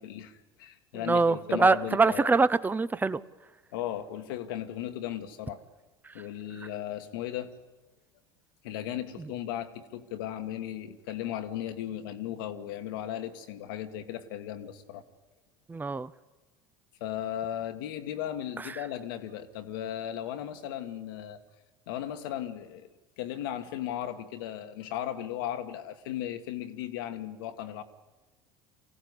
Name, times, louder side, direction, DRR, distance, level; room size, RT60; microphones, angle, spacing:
voice 1, 0.0-2.3 3.7-5.6 6.1-7.5 8.6-15.0 17.0-21.4 21.9-22.9 23.2-27.8, left 11 dB, 75° left, 7 dB, 1.6 m, -36 dB
voice 2, 1.1-3.2 15.7-16.1, right 3 dB, 15° right, 16 dB, 0.8 m, -24 dB
24.5 x 16.0 x 9.8 m, 1.2 s
hypercardioid pair, 75°, 11 cm